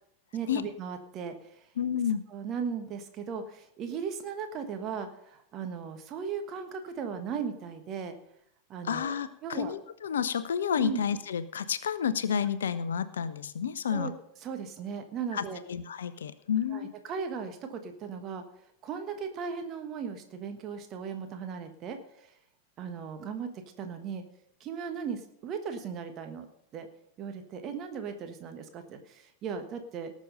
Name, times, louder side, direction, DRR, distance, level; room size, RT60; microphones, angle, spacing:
voice 1, 0.3-1.6 2.3-8.1 8.7-9.1 9.4-9.7 10.8-11.0 13.9-14.1 14.4-15.6 16.7-18.4 18.8-22.3 22.8-23.5 23.8-24.2 24.6-26.5 26.7-26.9 27.2-30.1, right 6 dB, 35° right, 7 dB, 1.4 m, -37 dB
voice 2, 1.8-2.2 8.8-14.1 15.3-16.9, left 8 dB, 65° left, 15 dB, 0.6 m, -30 dB
18.0 x 6.3 x 5.5 m, 0.73 s
figure-of-eight pair, 90°, 0 cm